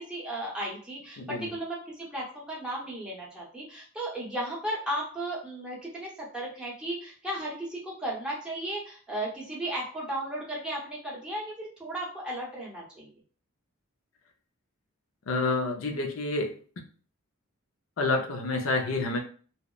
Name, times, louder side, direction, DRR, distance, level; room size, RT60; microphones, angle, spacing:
voice 1, 0.0-13.1, right 1 dB, 5° right, -5 dB, 0.7 m, -35 dB
voice 2, 1.2-1.5 15.3-16.5 18.0-19.2, left 2 dB, 70° left, 3 dB, 0.5 m, -28 dB
2.8 x 2.0 x 2.3 m, 0.42 s
head